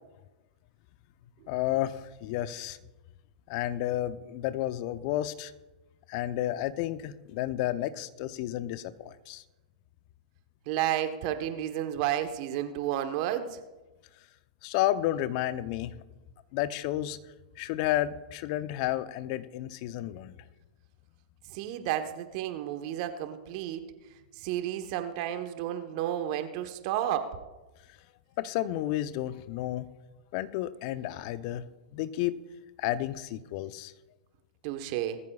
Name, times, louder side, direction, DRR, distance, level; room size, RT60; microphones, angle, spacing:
voice 1, 1.5-2.8 3.5-5.5 6.1-9.4 14.6-15.9 16.5-17.2 17.6-20.4 28.4-29.9 30.3-31.6 31.9-32.4 32.8-33.9, left 14 dB, 50° left, 13 dB, 0.8 m, -31 dB
voice 2, 10.7-13.6 21.5-23.8 24.4-27.4 34.6-35.2, right 11 dB, 50° right, 8 dB, 1.3 m, -31 dB
20.5 x 14.0 x 2.4 m, 1.1 s
hypercardioid pair, 110°, 4 cm